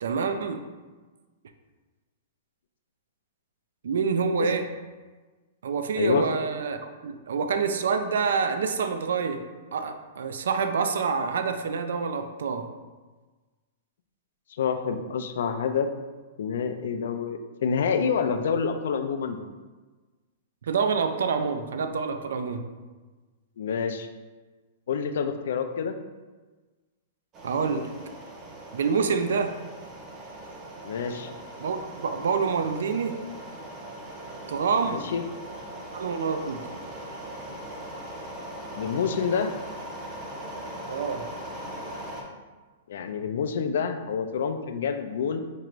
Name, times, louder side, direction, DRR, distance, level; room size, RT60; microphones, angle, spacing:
voice 1, 0.0-0.6 3.8-4.7 5.6-9.4 9.7-12.7 20.7-22.7 27.4-27.9 28.7-29.5 31.6-33.2 34.5-35.0 35.9-36.7 40.9-41.2, right 5 dB, 90° right, 8 dB, 0.3 m, -27 dB
voice 2, 14.6-15.9 16.4-19.4 23.6-24.1 24.9-25.9 30.8-31.3 34.9-35.2 38.8-39.5 42.9-45.4, left 6 dB, 70° left, 8 dB, 0.3 m, -27 dB
sound 1, 27.3-42.2, right 1 dB, 20° right, 0.5 m, -40 dB
4.5 x 2.5 x 3.0 m, 1.3 s
hypercardioid pair, 170°, 0 cm